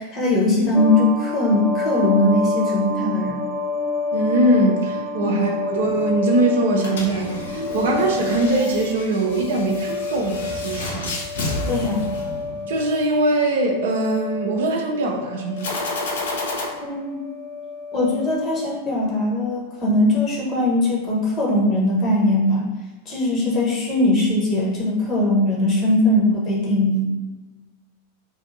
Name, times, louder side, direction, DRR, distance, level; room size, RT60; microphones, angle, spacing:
voice 1, 0.0-3.4 5.2-5.4 11.6-12.1 16.7-17.2 17.9-22.7 23.1-27.1, left 1 dB, 30° left, -3 dB, 1.0 m, -20 dB
sound 1, 0.7-18.8, left 3 dB, 10° right, 0.5 m, -29 dB
voice 2, 4.1-11.1 12.7-15.8, right 2 dB, 60° right, 1 dB, 0.5 m, -22 dB
sound 2, 6.7-12.9 15.6-16.7, left 2 dB, 60° left, 0.6 m, -31 dB
2.7 x 2.5 x 3.9 m, 1.2 s
figure-of-eight pair, 90°, 0 cm